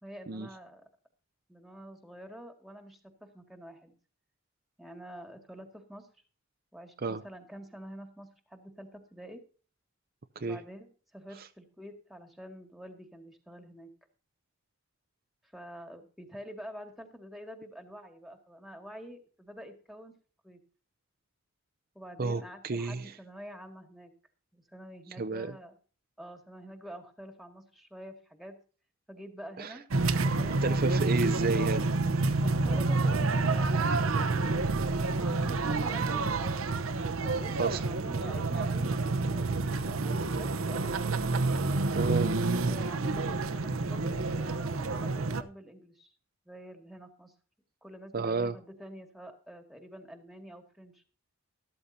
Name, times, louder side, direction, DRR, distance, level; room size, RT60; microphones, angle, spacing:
voice 1, 0.0-0.8 1.5-3.9 4.8-6.1 6.7-9.4 10.4-13.9 15.5-20.1 20.4-20.6 21.9-24.1 24.5-25.7 26.2-28.6 29.1-30.8 32.4-34.1 34.9-36.7 37.2-41.1 42.7-46.1 46.5-47.3 47.8-51.0, equal, ahead, 1.9 m, -47 dB
voice 2, 22.2-23.2 25.2-25.6 29.6-29.8 30.6-31.8 37.6-37.8 42.0-42.3 48.1-48.6, right 3 dB, 45° right, 0.6 m, -31 dB
sound 1, 29.9-45.4, right 3 dB, 85° right, 0.8 m, -28 dB
13.5 x 13.0 x 2.7 m
head